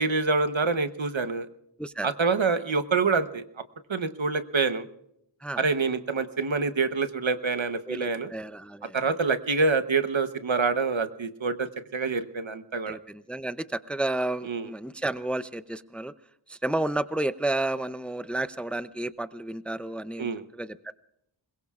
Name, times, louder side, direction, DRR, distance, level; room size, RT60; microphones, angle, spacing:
voice 1, 0.0-1.5 2.0-3.4 3.9-4.9 5.6-8.3 8.9-13.0 14.4-14.7 20.2-20.5, right 4 dB, 70° right, 11 dB, 1.0 m, -26 dB
voice 2, 7.9-9.0 12.9-16.1 16.5-20.3 20.5-20.9, right 2 dB, ahead, 13 dB, 0.5 m, -31 dB
27.0 x 21.0 x 2.4 m, 0.78 s
wide cardioid pair, 40°, 48 cm